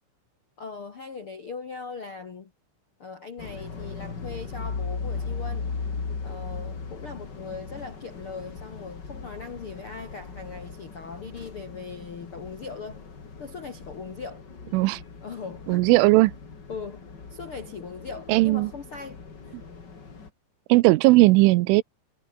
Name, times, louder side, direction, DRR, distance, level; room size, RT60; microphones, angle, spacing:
voice 1, 0.6-2.5 3.0-5.7 6.2-13.1 13.4-14.4 15.2-15.9 16.7-19.2 19.4-19.6, left 5 dB, 60° left, 1.4 m, -39 dB
sound 1, 3.4-20.3, left 4 dB, 30° left, 2.5 m, -38 dB
voice 2, 15.7-16.3 18.3-18.7 20.7-21.8, right 21 dB, 85° right, 3.2 m, -18 dB
omnidirectional pair, 5.6 m